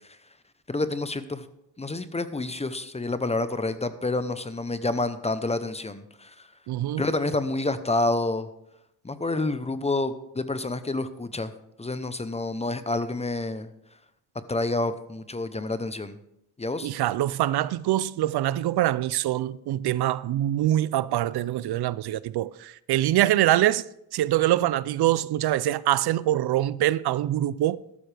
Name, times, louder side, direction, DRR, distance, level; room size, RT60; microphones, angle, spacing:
voice 1, 0.7-1.5 1.8-6.5 7.0-8.5 9.0-11.5 11.8-13.7 14.5-16.2 16.6-16.9, left 2 dB, 15° left, 0.7 m, -28 dB
voice 2, 6.7-7.0 16.8-23.8 24.1-27.8, right 13 dB, 70° right, 0.5 m, -24 dB
13.5 x 12.5 x 3.4 m
cardioid pair, 110°, 40 cm